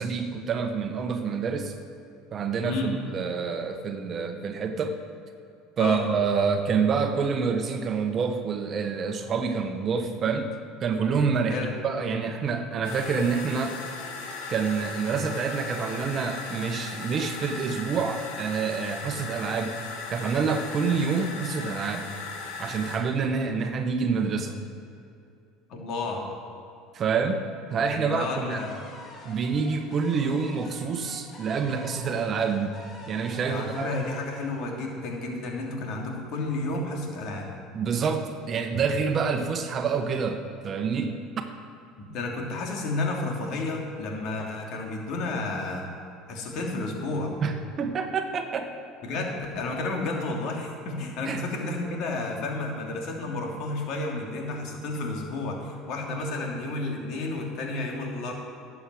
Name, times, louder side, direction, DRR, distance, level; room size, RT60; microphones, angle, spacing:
voice 1, 0.0-1.7 2.3-5.0 5.8-10.5 10.8-11.6 11.8-13.8 14.5-19.7 20.1-22.1 22.6-24.6 26.9-27.4 27.7-28.6 29.2-33.9 37.7-41.1 47.4-48.7 51.3-51.4, right 5 dB, 40° right, 6 dB, 1.1 m, -27 dB
voice 2, 2.6-2.9 5.8-6.0 11.5-11.7 25.7-26.2 27.9-28.8 33.5-37.5 42.0-45.9 46.3-47.3 49.0-58.3, left 2 dB, 60° left, 0 dB, 2.8 m, -31 dB
sound 1, 12.8-23.0, left 4 dB, 80° left, 1.8 m, -37 dB
sound 2, 28.5-35.5, left 2 dB, 45° left, 3.0 m, -47 dB
11.5 x 7.2 x 7.8 m, 2.6 s
supercardioid pair, 95°, 0 cm